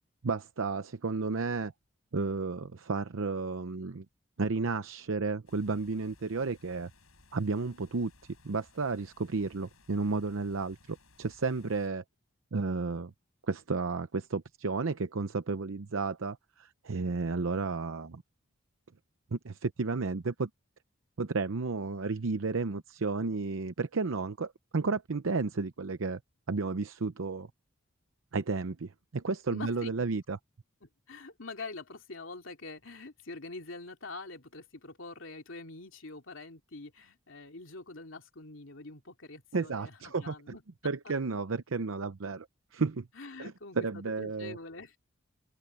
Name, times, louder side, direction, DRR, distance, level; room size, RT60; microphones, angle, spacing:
voice 1, 0.2-1.7 2.1-4.1 4.4-6.9 7.3-8.1 8.4-12.0 12.5-13.1 13.5-18.2 19.3-20.5 21.2-26.2 26.5-27.5 28.3-30.4 39.5-40.6 40.8-42.5 42.7-43.1 43.4-44.6, right 4 dB, 75° right, 0.7 m, -32 dB
sound 1, 5.5-11.9, left 3 dB, 85° left, 6.0 m, -61 dB
voice 2, 29.5-29.9 30.8-40.6 43.1-45.0, left 3 dB, 65° left, 2.9 m, -45 dB
open air
head